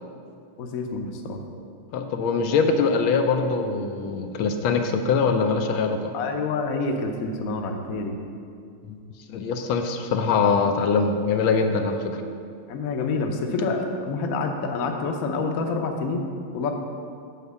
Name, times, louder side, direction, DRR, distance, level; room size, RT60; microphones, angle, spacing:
voice 1, 0.6-1.4 6.1-8.1 12.7-16.2 16.5-16.7, left 3 dB, 60° left, 3 dB, 1.0 m, -27 dB
voice 2, 1.9-6.1 8.9-9.0 9.3-12.2, left 5 dB, 80° left, 5 dB, 1.5 m, -23 dB
8.4 x 4.5 x 6.8 m, 2.4 s
omnidirectional pair, 2.2 m